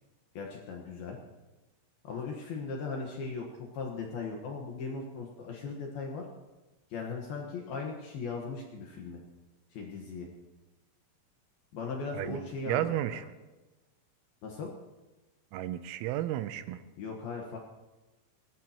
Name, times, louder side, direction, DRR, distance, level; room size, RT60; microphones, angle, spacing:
voice 1, 0.3-1.2 2.0-6.2 6.9-9.2 9.7-10.3 11.7-13.2 14.4-14.7 17.0-17.6, left 4 dB, 65° left, 0 dB, 2.5 m, -38 dB
voice 2, 12.7-13.2 15.5-16.8, right 13 dB, 85° right, 12 dB, 3.3 m, -32 dB
21.0 x 18.0 x 2.9 m, 1.1 s
omnidirectional pair, 6.0 m